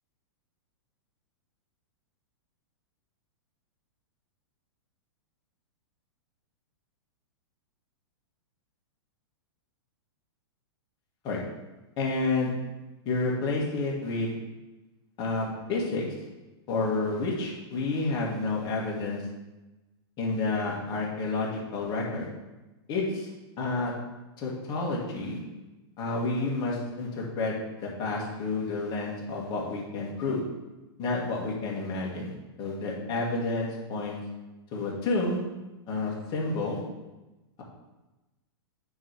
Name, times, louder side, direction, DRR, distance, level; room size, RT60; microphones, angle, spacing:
voice 1, 12.0-12.5 13.1-14.3 15.2-16.1 16.7-19.2 20.2-22.3 22.9-23.3 23.6-23.9 24.4-25.4 26.0-30.4 31.0-34.2 34.7-35.4 35.9-36.8, left 3 dB, 30° left, -3 dB, 1.7 m, -30 dB
9.2 x 3.3 x 4.7 m, 1.1 s
hypercardioid pair, 140°, 14 cm